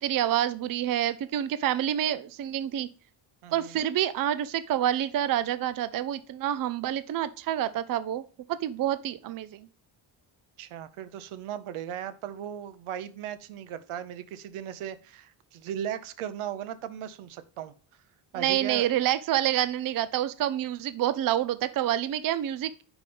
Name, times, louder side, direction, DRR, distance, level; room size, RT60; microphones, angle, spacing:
voice 1, 0.0-2.9 3.5-8.2 8.5-9.7 18.4-22.7, right 11 dB, 45° right, 0.5 m, -27 dB
voice 2, 3.4-3.8 10.6-17.7 18.3-18.9, right 10 dB, 85° right, 0.8 m, -37 dB
5.4 x 5.0 x 5.1 m
cardioid pair, 115°, 49 cm